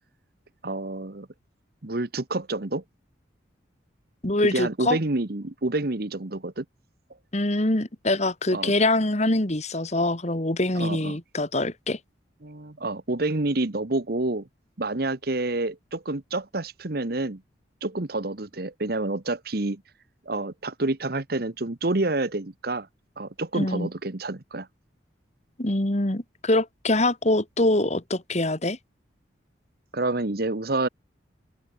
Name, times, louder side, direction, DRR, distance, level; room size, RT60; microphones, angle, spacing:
voice 1, 0.6-1.3 1.8-2.8 4.5-6.6 8.5-8.7 10.7-11.2 12.4-14.5 14.8-17.4 17.8-19.8 20.2-22.9 23.2-24.7 29.9-30.9, right 2 dB, 55° right, 1.2 m, -28 dB
voice 2, 4.2-5.0 7.3-12.0 23.6-23.9 25.6-28.8, left 2 dB, 35° left, 2.0 m, -24 dB
head